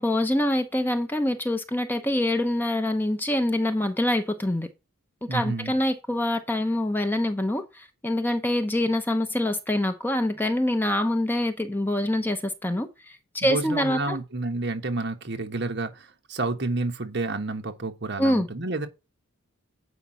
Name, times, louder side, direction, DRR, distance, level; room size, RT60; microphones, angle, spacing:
voice 1, 0.0-4.7 5.2-14.2 18.2-18.5, left 1 dB, 10° left, 0.7 m, -25 dB
voice 2, 5.3-5.8 13.4-18.9, right 2 dB, 55° right, 1.4 m, -30 dB
8.2 x 5.3 x 5.7 m
head